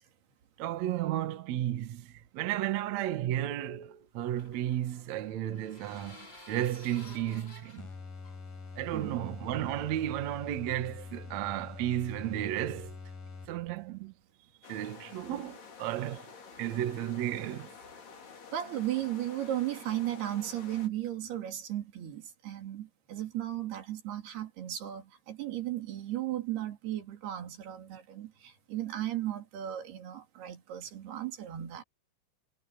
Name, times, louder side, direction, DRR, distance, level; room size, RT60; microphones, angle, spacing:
voice 1, 0.6-7.9 8.8-12.9 13.5-14.1 14.7-16.3 16.6-17.8, right 12 dB, 60° right, 2.0 m, -33 dB
sound 1, 3.7-9.2, left 2 dB, 30° left, 5.9 m, -54 dB
sound 2, 7.8-13.9, left 4 dB, 60° left, 6.3 m, -45 dB
voice 2, 8.9-9.2 18.5-31.8, right 13 dB, 85° right, 4.8 m, -35 dB
sound 3, 14.6-20.9, left 5 dB, 85° left, 6.6 m, -50 dB
omnidirectional pair, 4.5 m